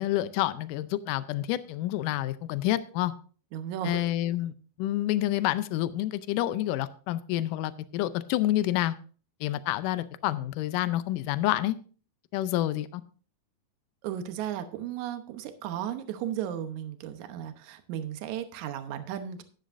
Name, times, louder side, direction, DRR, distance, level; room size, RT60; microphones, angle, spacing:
voice 1, 0.0-3.1 3.8-4.5 4.8-9.0 9.4-11.8 12.3-13.0, left 14 dB, 80° left, 14 dB, 2.2 m, -28 dB
voice 2, 3.5-4.1 14.0-19.4, right 10 dB, 70° right, 8 dB, 2.2 m, -35 dB
12.5 x 10.5 x 2.6 m, 0.39 s
omnidirectional pair, 3.8 m